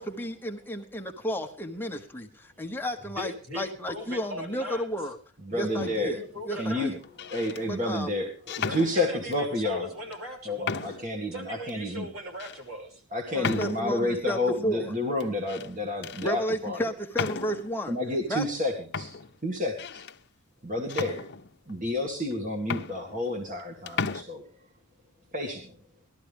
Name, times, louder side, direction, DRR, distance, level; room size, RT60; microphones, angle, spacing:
voice 1, 0.0-5.2 5.5-7.0 7.7-8.1 13.3-15.2 16.2-17.9 18.3-18.4, equal, 10° left, 3 dB, 1.2 m, -33 dB
voice 2, 3.2-4.9 6.0-6.9 8.6-10.9 11.3-13.0, equal, 75° right, 1 dB, 6.2 m, -39 dB
voice 3, 5.4-6.2 6.5-6.9 7.2-9.9 10.5-12.1 13.1-16.8 17.9-19.1 19.4-20.0 20.6-21.2 21.7-24.4 25.3-25.8, left 1 dB, 40° right, 3 dB, 2.1 m, -30 dB
sound 1, 5.8-6.2 7.0-7.6 8.5-9.4 10.1-10.2 10.6-11.2 11.7-11.8 12.4-12.6 13.4-14.1 15.2-15.7 16.0-16.3 17.1-17.8 18.5-18.6 18.9-20.2 20.9-21.7 22.3-22.4 22.6-23.6 23.9-24.2, left 5 dB, 50° left, 0.9 m, -35 dB
19.5 x 13.0 x 3.5 m, 0.42 s
head